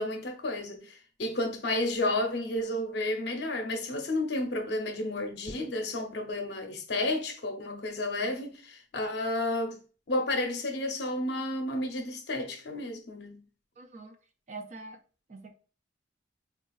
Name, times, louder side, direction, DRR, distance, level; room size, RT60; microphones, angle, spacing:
voice 1, 0.0-9.8 10.1-13.4, left 1 dB, 65° left, 0.6 m, -31 dB
voice 2, 13.8-14.2 14.5-15.0 15.3-15.5, right 3 dB, 40° right, 0.4 m, -44 dB
3.7 x 2.4 x 2.3 m
head